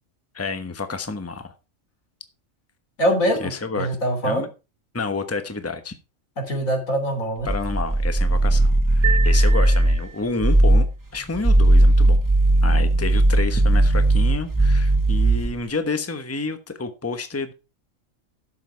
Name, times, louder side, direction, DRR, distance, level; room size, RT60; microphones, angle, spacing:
voice 1, 0.3-1.5 3.4-3.9 4.2-4.5 4.9-6.0 7.4-10.9 11.1-12.2 12.6-17.5, left 3 dB, 10° left, 8 dB, 1.1 m, -29 dB
voice 2, 3.0-3.5 3.8-4.4 6.4-7.5, equal, 90° left, 4 dB, 3.8 m, -23 dB
sound 1, 7.4-10.0 10.4-10.9 11.3-15.6, right 1 dB, 15° right, 1.5 m, -17 dB
sound 2, 9.0-10.5, right 7 dB, 70° right, 1.3 m, -30 dB
12.0 x 7.5 x 4.6 m, 0.29 s
omnidirectional pair, 1.4 m